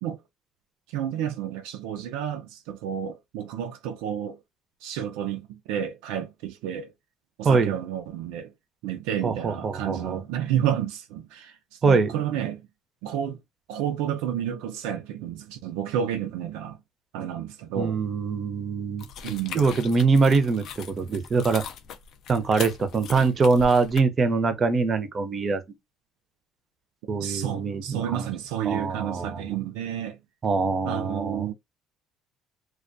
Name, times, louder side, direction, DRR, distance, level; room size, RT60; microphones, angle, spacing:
voice 1, 0.9-4.4 4.8-6.9 7.4-8.5 8.8-12.6 13.0-13.4 13.7-16.8 17.1-18.0 19.2-19.7 27.2-30.2 30.8-31.5, right 10 dB, 85° right, 0.4 m, -30 dB
voice 2, 9.2-10.2 11.8-12.1 17.8-19.1 19.5-21.6 22.3-25.6 27.1-28.3 28.7-29.6 30.4-31.5, right 4 dB, 40° right, 0.6 m, -23 dB
sound 1, 19.0-24.0, left 7 dB, 65° left, 0.4 m, -40 dB
2.3 x 2.2 x 2.5 m
supercardioid pair, 85°, 0 cm